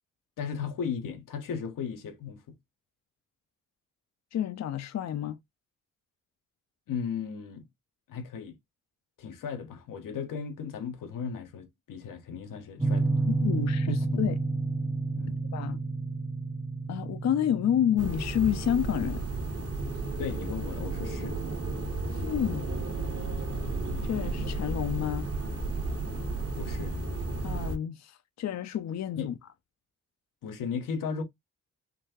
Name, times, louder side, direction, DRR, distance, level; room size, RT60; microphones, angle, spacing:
voice 1, 0.4-2.6 6.9-7.6 8.1-8.6 9.2-13.3 13.9-14.3 15.1-15.4 20.2-21.4 26.6-27.0 29.2-29.3 30.4-31.2, left 6 dB, 80° left, 0.8 m, -36 dB
voice 2, 4.3-5.4 13.3-14.3 15.5-15.8 16.9-19.2 22.1-22.7 24.0-25.3 27.4-29.3, left 10 dB, 55° left, 0.5 m, -29 dB
sound 1, 12.8-21.5, right 3 dB, 10° right, 0.5 m, -31 dB
sound 2, 18.0-27.8, right 2 dB, 50° right, 1.2 m, -33 dB
3.8 x 2.3 x 2.7 m
supercardioid pair, 40°, 32 cm